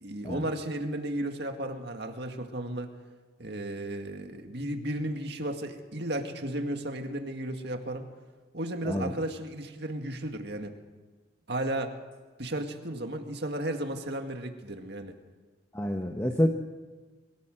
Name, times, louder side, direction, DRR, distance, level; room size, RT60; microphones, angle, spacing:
voice 1, 0.0-2.9 3.4-8.1 8.5-10.7 11.5-11.9 12.4-15.2, right 1 dB, 55° right, 5 dB, 2.1 m, -34 dB
voice 2, 15.7-16.5, left 1 dB, 15° left, 3 dB, 1.0 m, -27 dB
23.0 x 17.0 x 7.8 m, 1.3 s
head